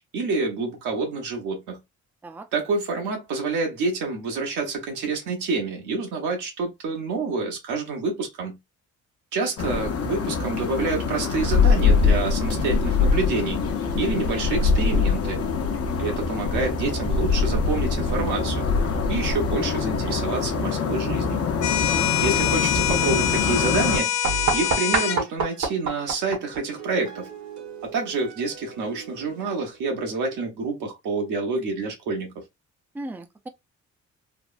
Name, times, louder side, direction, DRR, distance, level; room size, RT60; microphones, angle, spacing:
voice 1, 0.1-1.8 2.5-8.6 9.3-13.6 14.0-15.4 16.0-18.7 19.1-21.4 22.2-24.2 24.5-27.3 27.8-32.3, right 3 dB, 85° right, 1.2 m, -28 dB
sound 1, 9.6-24.0, left 5 dB, 50° left, 0.7 m, -23 dB
sound 2, 21.6-25.2, left 11 dB, 85° left, 0.5 m, -24 dB
voice 2, 21.9-22.2 32.9-33.5, right 2 dB, 5° right, 0.4 m, -37 dB
sound 3, 24.2-29.8, right 4 dB, 65° right, 1.1 m, -31 dB
3.3 x 2.1 x 2.4 m
cardioid pair, 90°, 30 cm